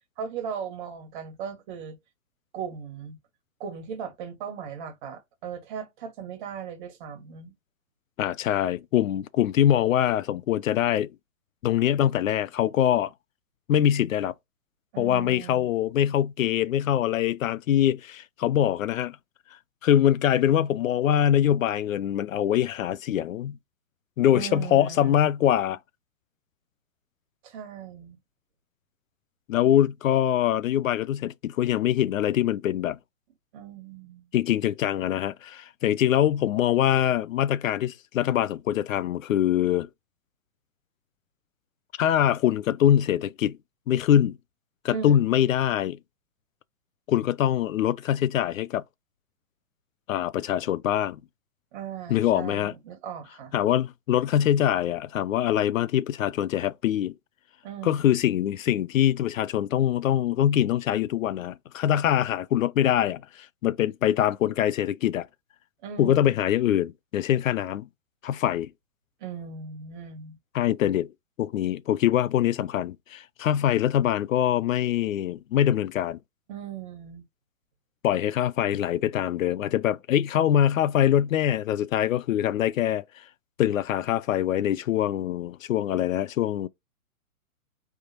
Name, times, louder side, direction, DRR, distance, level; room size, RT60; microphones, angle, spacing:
voice 1, 0.2-2.0 2.5-3.2 3.6-7.5 14.9-15.7 24.3-25.2 27.4-28.2 33.5-34.2 44.9-45.3 51.7-53.5 57.6-58.1 65.8-66.4 69.2-70.4 76.5-77.2, right 7 dB, 35° right, 1.7 m, -38 dB
voice 2, 8.2-11.1 11.6-13.1 13.7-14.3 15.0-19.2 19.8-23.6 24.2-25.8 29.5-33.0 34.3-39.9 42.0-43.6 43.9-44.4 44.8-46.0 47.1-48.8 50.1-51.2 52.1-52.7 53.5-57.1 57.8-65.3 66.0-67.9 68.2-68.7 70.5-71.1 71.4-76.2 78.0-83.2 83.6-86.7, left 11 dB, 65° left, 0.5 m, -24 dB
4.9 x 3.4 x 2.9 m
hypercardioid pair, 150°, 43 cm